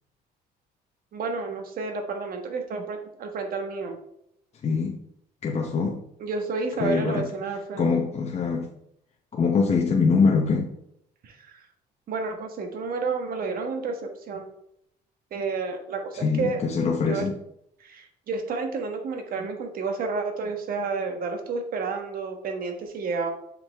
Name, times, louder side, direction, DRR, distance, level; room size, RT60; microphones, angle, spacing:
voice 1, 1.1-4.0 6.2-8.0 11.2-11.6 12.1-14.5 15.3-16.6 17.1-17.3 17.8-23.3, right 4 dB, 60° right, 1.4 m, -30 dB
voice 2, 4.6-5.0 5.4-6.0 6.8-7.3 7.8-8.7 9.3-10.7 16.1-17.3, left 5 dB, 40° left, 0.9 m, -23 dB
7.1 x 5.3 x 3.5 m
cardioid pair, 110°, 17 cm